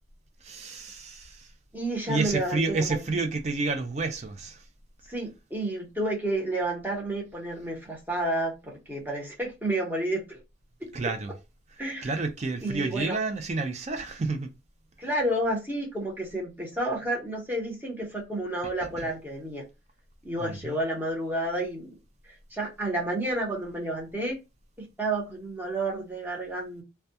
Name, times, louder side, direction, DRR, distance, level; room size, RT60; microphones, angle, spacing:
voice 1, 0.4-1.5 2.1-4.7 10.9-11.3 11.7-14.5 18.6-19.1 20.4-20.8, right 3 dB, 35° right, 0.4 m, -30 dB
voice 2, 1.7-3.0 5.1-10.4 10.8-10.9 11.8-12.2 12.6-13.2 15.0-19.6 20.2-21.9 22.5-24.4 24.8-26.8, right 1 dB, 10° right, 0.8 m, -30 dB
2.2 x 2.2 x 2.7 m
head